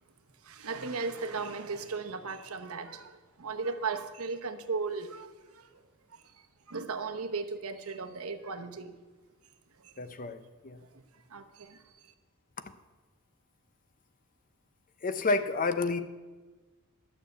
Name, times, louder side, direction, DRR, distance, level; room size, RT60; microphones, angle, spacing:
voice 1, 0.3-5.8 6.1-9.0 9.7-10.0 10.8-12.1, right 4 dB, 75° right, 7 dB, 1.0 m, -37 dB
voice 2, 10.0-10.8 15.0-16.0, left 3 dB, 40° left, 11 dB, 0.7 m, -30 dB
12.0 x 6.6 x 7.9 m, 1.3 s
head